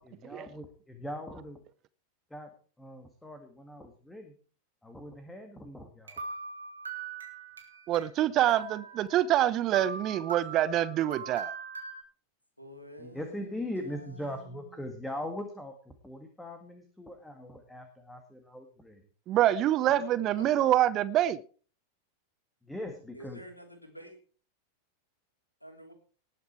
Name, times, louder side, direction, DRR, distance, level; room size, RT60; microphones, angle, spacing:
voice 1, 0.0-1.6 2.3-2.5 2.8-4.3 4.8-6.2 13.0-19.0 22.6-23.4, left 1 dB, 5° left, 1.9 m, -41 dB
sound 1, 6.1-8.0 8.4-9.4 9.7-12.0, right 5 dB, 75° right, 2.8 m, -41 dB
voice 2, 7.9-11.5 19.3-21.4, right 12 dB, 35° right, 0.6 m, -26 dB
voice 3, 12.6-14.9 19.8-20.7 23.1-24.2 25.6-25.9, right 1 dB, 90° left, 3.0 m, -49 dB
19.0 x 6.9 x 4.6 m
figure-of-eight pair, 90°, 0 cm